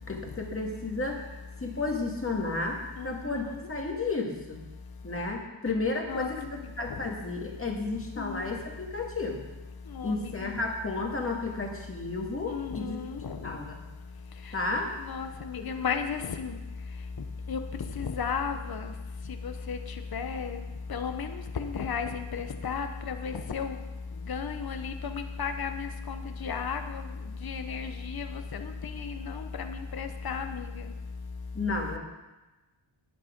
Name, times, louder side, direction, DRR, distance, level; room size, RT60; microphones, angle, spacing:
voice 1, 0.1-1.2 1.6-3.4 3.7-4.6 5.0-9.5 10.0-13.0 13.4-13.8 14.5-14.9 15.6-15.7 31.5-32.0, left 3 dB, 25° left, 0 dB, 2.0 m, -32 dB
voice 2, 3.0-3.6 6.1-6.3 8.2-8.5 9.9-10.5 12.5-13.4 15.0-16.6 17.5-17.6 18.0-18.9 19.4-19.8 20.1-20.6 20.9-21.3 21.6-23.8 24.3-27.0 27.4-28.3 28.5-30.8, left 6 dB, 50° left, 7 dB, 0.8 m, -34 dB
10.5 x 8.6 x 5.1 m, 1.1 s
wide cardioid pair, 110°, 49 cm